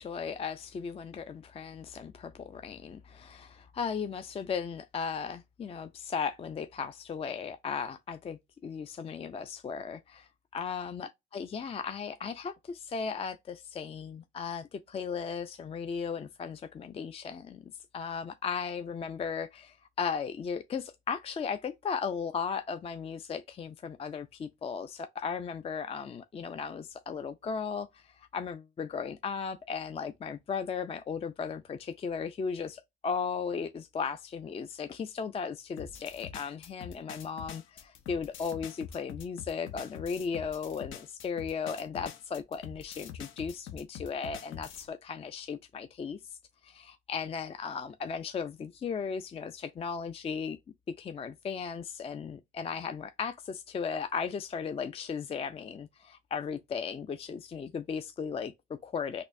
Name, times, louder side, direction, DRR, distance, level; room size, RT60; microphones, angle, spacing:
voice 1, 0.0-17.6 17.9-46.2 46.6-50.6 51.0-59.2, left 6 dB, 30° left, 0.3 m, -36 dB
sound 1, 35.8-44.9, left 8 dB, 80° left, 0.6 m, -45 dB
4.2 x 2.5 x 2.5 m
cardioid pair, 90°, 20 cm